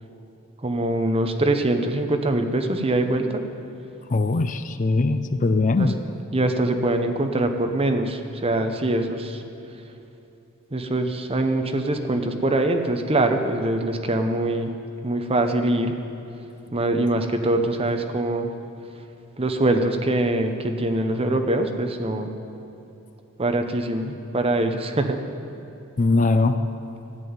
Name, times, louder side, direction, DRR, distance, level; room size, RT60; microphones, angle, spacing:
voice 1, 0.6-3.4 5.8-5.9 6.3-9.4 10.7-14.7 15.0-15.9 16.7-18.5 19.4-22.3 23.4-25.2, right 2 dB, 25° right, 6 dB, 0.9 m, -23 dB
voice 2, 4.1-5.9 26.0-26.6, left 3 dB, 35° left, 10 dB, 0.5 m, -21 dB
13.5 x 7.7 x 9.5 m, 2.9 s
head